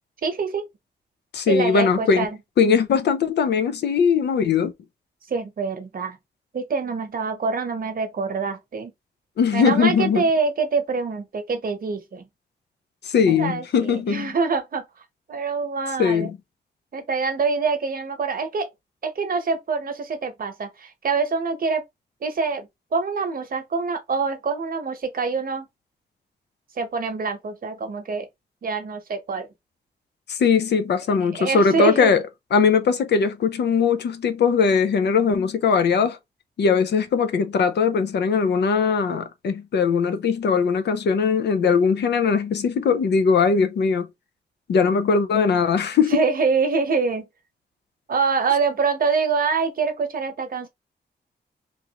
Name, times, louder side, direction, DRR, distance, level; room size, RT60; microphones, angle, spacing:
voice 1, 0.2-0.6 1.5-2.4 5.3-6.2 6.5-8.9 9.5-12.3 13.3-14.8 15.3-16.3 16.9-18.7 19.0-21.8 22.2-25.7 26.8-28.3 28.6-29.5 31.3-32.1 46.1-47.3 48.1-50.7, right 4 dB, 55° right, 0.9 m, -25 dB
voice 2, 1.3-2.3 2.6-4.7 9.4-10.2 13.0-14.3 16.0-16.3 30.3-32.2 32.5-36.2 36.6-44.1 44.7-46.2, left 5 dB, 80° left, 0.5 m, -20 dB
3.1 x 2.5 x 2.8 m
cardioid pair, 90°, 17 cm